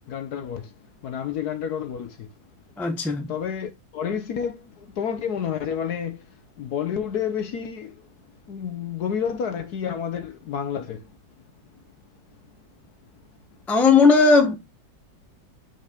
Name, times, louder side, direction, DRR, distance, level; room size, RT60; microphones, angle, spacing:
voice 1, 0.1-0.7 1.0-2.3 3.3-6.3 6.6-8.1 8.5-11.1, left 8 dB, 60° left, 1.1 m, -30 dB
voice 2, 2.8-3.3 13.7-14.6, left 4 dB, ahead, 0.6 m, -17 dB
5.6 x 4.4 x 4.9 m
omnidirectional pair, 2.1 m